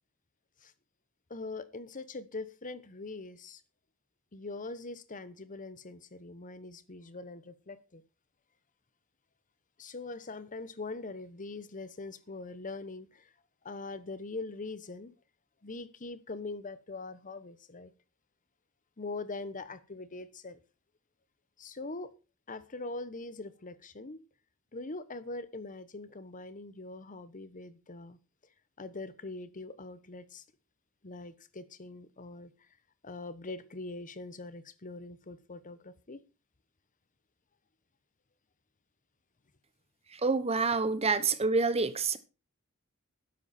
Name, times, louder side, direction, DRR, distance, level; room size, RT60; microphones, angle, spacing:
voice 1, 1.3-3.6 4.3-8.0 9.8-13.3 13.6-15.1 15.6-17.9 19.0-20.6 21.6-22.1 22.5-24.2 24.7-28.2 28.8-30.4 31.0-32.7 33.0-36.2, left 3 dB, 35° left, 1.1 m, -42 dB
voice 2, 40.1-42.2, right 4 dB, 30° right, 1.0 m, -27 dB
13.0 x 10.5 x 4.3 m
head